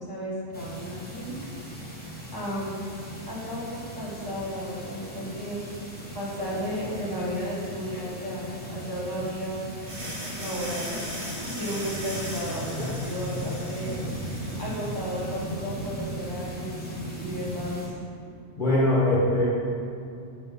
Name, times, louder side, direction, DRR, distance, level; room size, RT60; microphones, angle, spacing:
voice 1, 0.0-2.9 3.3-5.7 6.1-9.7 10.3-17.9, equal, 15° right, -7 dB, 1.3 m, -34 dB
sound 1, 0.5-17.9, right 1 dB, 10° left, 0.8 m, -38 dB
sound 2, 9.9-15.6, equal, 65° right, 1.9 m, -38 dB
voice 2, 18.6-19.5, left 1 dB, 40° left, -9 dB, 1.2 m, -22 dB
6.1 x 4.0 x 5.4 m, 2.6 s
omnidirectional pair, 1.5 m